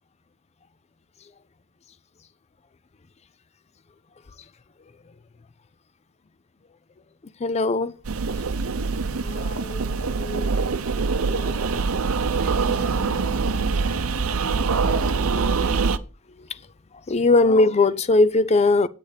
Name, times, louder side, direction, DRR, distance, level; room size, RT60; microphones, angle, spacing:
voice 1, 7.4-7.9 9.2-9.8 10.2-10.5 11.3-11.7 17.1-18.9, left 3 dB, 30° left, 0.5 m, -20 dB
sound 1, 8.0-16.0, right 4 dB, 70° right, 0.7 m, -24 dB
voice 2, 11.7-16.0, left 2 dB, 85° left, 3.2 m, -42 dB
8.8 x 8.4 x 5.0 m
head